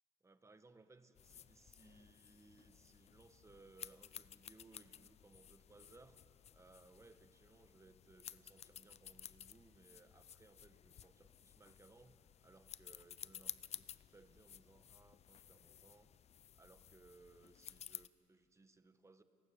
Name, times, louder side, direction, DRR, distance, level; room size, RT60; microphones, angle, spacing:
voice 1, 0.2-6.2 6.5-16.2 16.5-19.2, right 3 dB, 15° right, 10 dB, 1.2 m, -64 dB
sound 1, 1.2-18.1, left 9 dB, 40° left, 0.5 m, -55 dB
29.5 x 18.5 x 7.1 m, 2.8 s
cardioid pair, 110°, 17 cm